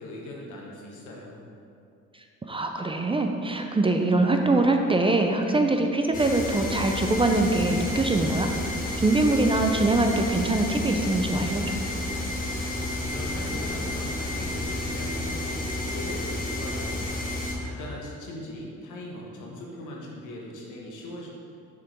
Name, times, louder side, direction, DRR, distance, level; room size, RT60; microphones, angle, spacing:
voice 1, 0.0-1.4 13.0-17.1 17.6-21.3, left 1 dB, 85° left, -3 dB, 1.2 m, -39 dB
voice 2, 2.5-8.5 9.0-11.6, right 2 dB, 20° right, 4 dB, 0.4 m, -23 dB
sound 1, 6.1-17.5, left 1 dB, 30° left, 1.0 m, -31 dB
6.3 x 3.7 x 4.4 m, 2.5 s
cardioid pair, 90°, 30 cm